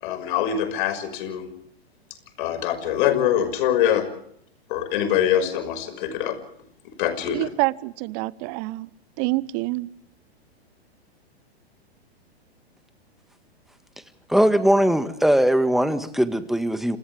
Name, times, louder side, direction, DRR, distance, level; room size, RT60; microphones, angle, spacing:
voice 1, 0.0-1.4 2.4-4.1 4.7-6.4 6.8-7.5, left 10 dB, 55° left, 5.9 m, -24 dB
voice 2, 7.3-8.9 9.2-9.9, right 22 dB, 40° right, 1.0 m, -26 dB
voice 3, 14.3-17.0, right 1 dB, ahead, 1.8 m, -20 dB
29.5 x 28.0 x 3.5 m
hypercardioid pair, 110°, 32 cm